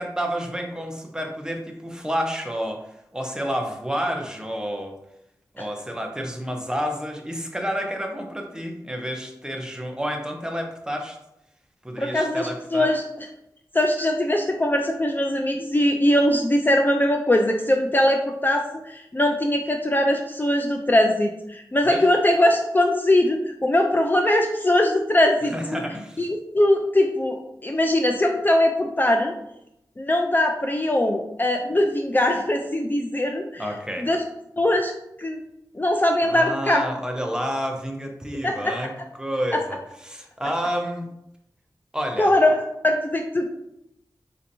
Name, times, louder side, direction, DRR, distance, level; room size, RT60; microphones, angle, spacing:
voice 1, 0.0-5.0 5.5-11.2 11.8-12.9 21.8-22.1 25.4-26.3 33.6-34.1 36.2-38.9 39.2-41.1 41.9-42.3, equal, 10° right, 2 dB, 0.6 m, -30 dB
voice 2, 12.0-13.3 13.7-25.8 26.2-29.3 30.0-33.7 34.0-34.2 34.6-34.9 35.2-35.4 35.7-36.8 38.4-38.7 39.5-39.6 42.2-43.5, left 1 dB, 25° left, 3 dB, 0.4 m, -21 dB
4.3 x 2.8 x 2.6 m, 0.82 s
wide cardioid pair, 60°, 7 cm